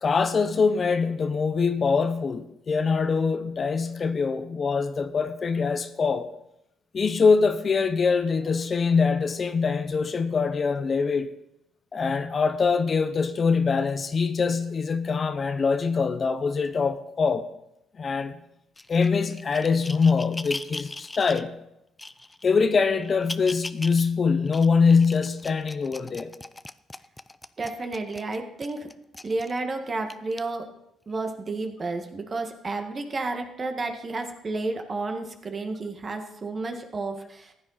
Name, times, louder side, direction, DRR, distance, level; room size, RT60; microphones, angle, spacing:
voice 1, 0.0-6.3 6.9-11.3 11.9-17.5 18.0-18.4 18.9-21.6 22.4-26.3, left 5 dB, 45° left, 0.9 m, -23 dB
sound 1, 18.8-21.4 22.0-22.5 23.0-24.0 24.5-29.6 30.1-30.4 31.1-31.2, left 2 dB, 15° left, 0.5 m, -39 dB
voice 2, 27.6-28.9 29.2-30.7 31.1-37.5, right 3 dB, 40° right, 1.8 m, -31 dB
15.0 x 9.4 x 4.2 m
supercardioid pair, 65°, 0 cm